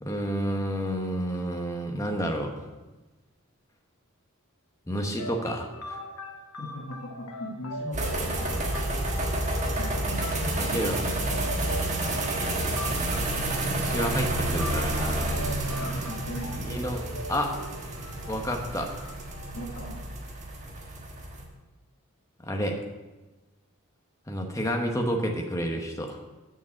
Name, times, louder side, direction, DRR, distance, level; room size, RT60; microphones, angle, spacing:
voice 1, 0.0-2.7 4.9-6.0 10.6-11.0 13.7-15.4 16.6-17.0 17.3-17.5 18.3-18.9 22.4-22.8 24.3-26.2, equal, 15° left, 2 dB, 1.0 m, -30 dB
sound 1, 5.2-19.5, left 1 dB, 80° left, 1.0 m, -41 dB
voice 2, 6.6-8.7 9.8-11.7 15.7-16.9 19.5-20.0, equal, 60° left, -2 dB, 1.5 m, -39 dB
sound 2, 7.9-21.4, right 1 dB, 30° right, 1.4 m, -30 dB
6.9 x 6.3 x 7.6 m, 1.1 s
head